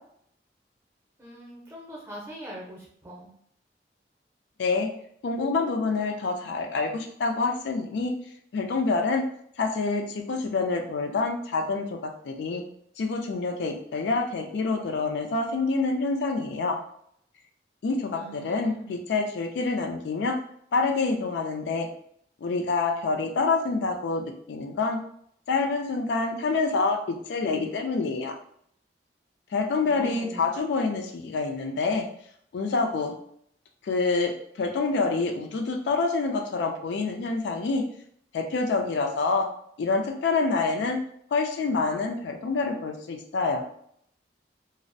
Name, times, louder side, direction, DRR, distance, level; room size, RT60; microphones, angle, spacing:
voice 1, 1.2-3.3 18.1-18.9 29.9-30.8, equal, 15° right, -4 dB, 0.6 m, -42 dB
voice 2, 4.6-4.9 5.2-8.1 8.5-9.2 9.6-12.6 13.0-16.8 17.8-20.4 20.7-21.9 22.4-25.0 25.5-28.4 29.5-32.1 32.5-33.2 33.8-37.8 38.3-39.5 39.8-41.0 41.3-43.6, left 3 dB, 80° left, 3 dB, 0.4 m, -27 dB
2.4 x 2.0 x 2.6 m, 0.67 s
head